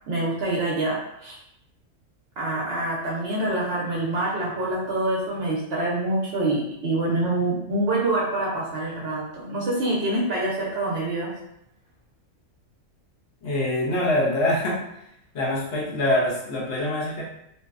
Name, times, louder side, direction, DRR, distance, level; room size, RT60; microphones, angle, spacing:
voice 1, 0.1-1.4 2.4-11.3, right 2 dB, 60° right, -5 dB, 0.7 m, -26 dB
voice 2, 13.4-14.8 15.3-17.2, left 1 dB, 65° left, -5 dB, 0.9 m, -24 dB
2.5 x 2.1 x 2.3 m, 0.78 s
omnidirectional pair, 1.3 m